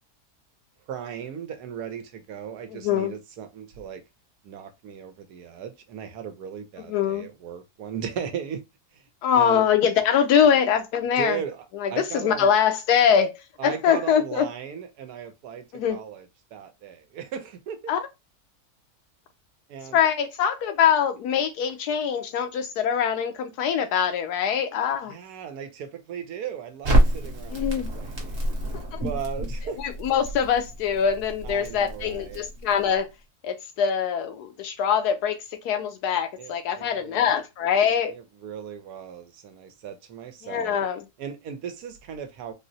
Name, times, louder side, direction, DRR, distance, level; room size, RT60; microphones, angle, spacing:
voice 1, 0.9-4.0 4.4-8.6 8.9-9.0 9.3-9.7 11.2-12.5 13.6-16.3 16.5-17.8 19.7-20.0 25.1-28.6 29.0-29.8 31.4-32.4 36.4-37.3 38.1-40.8 41.2-42.5, right 8 dB, 80° right, 1.2 m, -37 dB
voice 2, 2.7-3.2 6.9-7.3 9.2-11.4 11.7-14.5 15.7-16.0 17.9-18.1 19.9-25.1 27.5-27.9 28.7-29.0 29.8-33.1 33.4-38.2 40.4-41.0, left 8 dB, 80° left, 1.2 m, -23 dB
Crackle, 26.8-33.0, right 1 dB, 50° right, 1.1 m, -27 dB
3.7 x 2.0 x 2.6 m
omnidirectional pair, 1.7 m